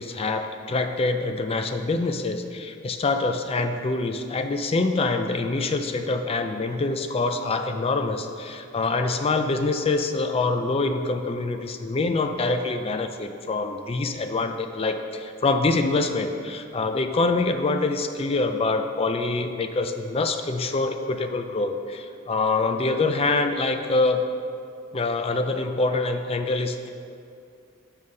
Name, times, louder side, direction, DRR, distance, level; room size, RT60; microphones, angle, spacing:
voice 1, 0.0-24.2 24.9-26.9, left 3 dB, 30° left, 7 dB, 0.3 m, -25 dB
6.4 x 5.6 x 5.4 m, 2.4 s
head